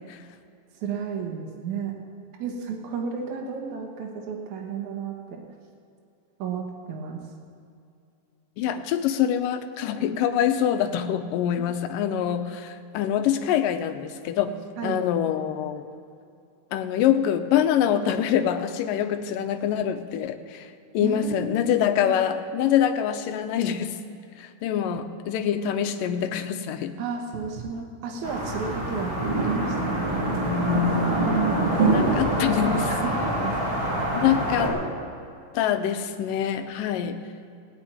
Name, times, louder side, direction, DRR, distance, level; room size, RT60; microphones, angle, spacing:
voice 1, 0.8-1.9 2.4-5.4 6.4-7.2 14.8-15.0 21.0-21.7 22.0-22.2 27.0-30.1 32.9-34.2, right 5 dB, 65° right, 0 dB, 2.6 m, -33 dB
voice 2, 8.6-15.9 16.7-24.0 24.4-26.9 31.7-32.9 34.2-34.8 35.5-37.2, left 9 dB, 80° left, 8 dB, 2.4 m, -25 dB
sound 1, 28.2-34.7, right 1 dB, 35° right, 3.7 m, -24 dB
18.0 x 6.2 x 9.3 m, 2.5 s
omnidirectional pair, 3.9 m